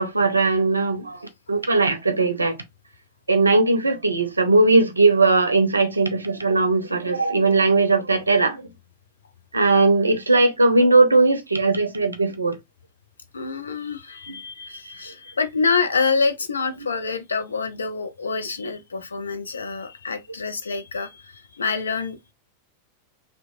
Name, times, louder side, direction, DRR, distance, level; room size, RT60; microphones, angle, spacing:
voice 1, 0.0-2.6 3.3-8.7 9.5-12.6 14.3-14.4 14.7-14.8, right 3 dB, 80° right, 0.5 m, -19 dB
voice 2, 13.3-22.3, left 4 dB, 75° left, 0.4 m, -26 dB
2.9 x 2.1 x 2.5 m
figure-of-eight pair, 90°, 0 cm